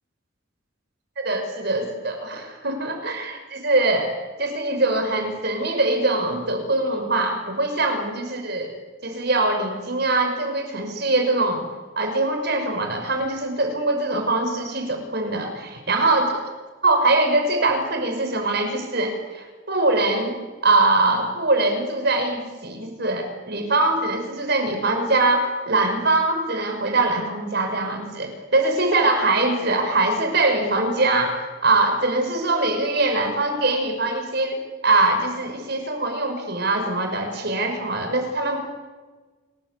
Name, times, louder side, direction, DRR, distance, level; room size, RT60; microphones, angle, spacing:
voice 1, 1.2-8.7 9.0-11.7 12.0-16.4 16.8-38.6, right 2 dB, 55° right, 5 dB, 5.9 m, -22 dB
28.5 x 20.0 x 8.4 m, 1.3 s
head